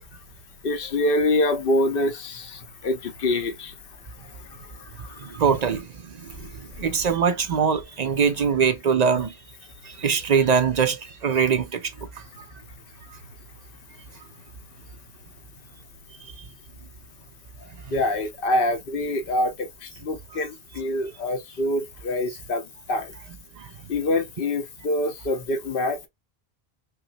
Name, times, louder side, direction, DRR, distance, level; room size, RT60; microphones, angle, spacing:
voice 1, 0.6-3.7 4.5-4.7 5.0-5.2 17.9-23.1 23.9-26.1, left 1 dB, 65° left, 1.0 m, -25 dB
voice 2, 5.2-9.3 9.8-11.9 17.9-18.0 23.6-23.7, right 6 dB, 50° right, 0.5 m, -23 dB
5.5 x 2.1 x 2.6 m
omnidirectional pair, 1.0 m